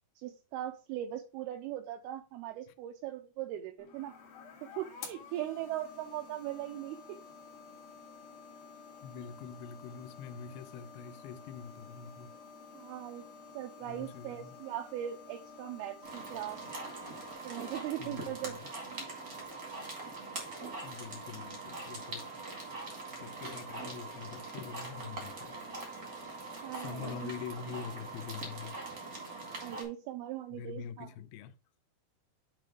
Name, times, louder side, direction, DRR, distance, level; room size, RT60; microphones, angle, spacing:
voice 1, 0.2-4.2 4.6-7.2 12.7-13.3 13.5-16.6 17.4-19.1 26.6-27.3 29.6-31.1, right 12 dB, 80° right, 2.4 m, -40 dB
sound 1, 3.8-17.3, left 5 dB, 65° left, 3.0 m, -51 dB
voice 2, 9.0-12.3 13.8-14.6 18.0-18.7 20.8-22.3 23.1-25.6 26.7-28.8 30.5-31.6, left 7 dB, 80° left, 2.3 m, -45 dB
sound 2, 16.0-29.8, right 3 dB, 40° right, 1.2 m, -42 dB
7.6 x 3.2 x 5.0 m
omnidirectional pair, 4.7 m